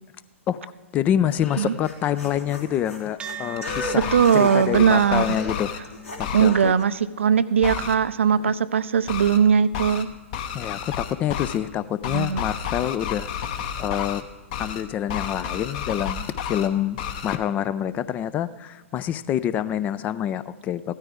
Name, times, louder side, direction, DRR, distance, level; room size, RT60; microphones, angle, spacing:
voice 1, 0.5-5.7 6.2-6.7 10.5-13.3 13.8-14.3 14.6-21.0, left 10 dB, 20° left, 17 dB, 0.4 m, -26 dB
sound 1, 1.3-6.8, left 1 dB, 75° left, 3.2 m, -36 dB
sound 2, 3.2-11.9, right 3 dB, 10° right, 0.7 m, -44 dB
sound 3, 3.6-4.3 4.7-5.8 6.2-6.5 7.6-7.9 9.1-9.4 9.7-10.0 10.3-11.6 12.0-14.2 14.5-14.8 15.1-16.7 17.0-17.4, left 8 dB, 40° left, 0.9 m, -31 dB
voice 2, 3.9-5.3 6.3-10.1 12.1-12.4, right 7 dB, 60° right, 15 dB, 0.4 m, -20 dB
16.0 x 13.0 x 3.5 m, 1.2 s
figure-of-eight pair, 110°, 7 cm